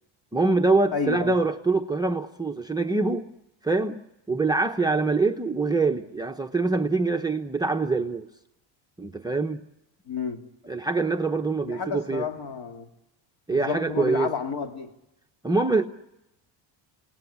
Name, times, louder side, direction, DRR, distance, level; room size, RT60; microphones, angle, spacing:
voice 1, 0.3-3.3 3.6-4.0 4.3-8.3 9.0-9.6 10.6-12.2 13.5-14.3 15.4-15.8, right 3 dB, 10° right, 0.9 m, -24 dB
voice 2, 0.9-1.4 10.1-10.4 11.6-12.9 13.5-14.9, left 5 dB, 50° left, 2.6 m, -30 dB
28.5 x 18.5 x 9.9 m
cardioid pair, 115°, 49 cm